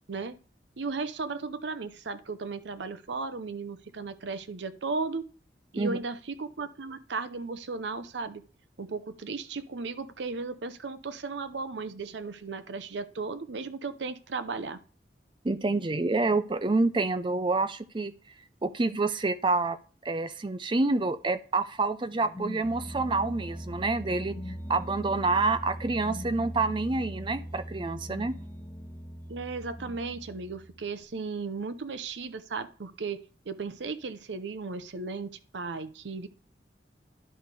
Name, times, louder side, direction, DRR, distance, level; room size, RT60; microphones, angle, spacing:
voice 1, 0.8-5.3 5.7-8.4 8.8-14.8 29.3-33.2 33.5-36.3, right 4 dB, 90° right, 13 dB, 0.7 m, -35 dB
voice 2, 15.4-18.1 18.6-19.8 20.0-24.3 24.7-28.4, right 3 dB, 30° right, 13 dB, 0.5 m, -27 dB
sound 1, 22.1-30.9, equal, 20° left, 1.3 m, -40 dB
11.0 x 5.2 x 3.3 m, 0.38 s
head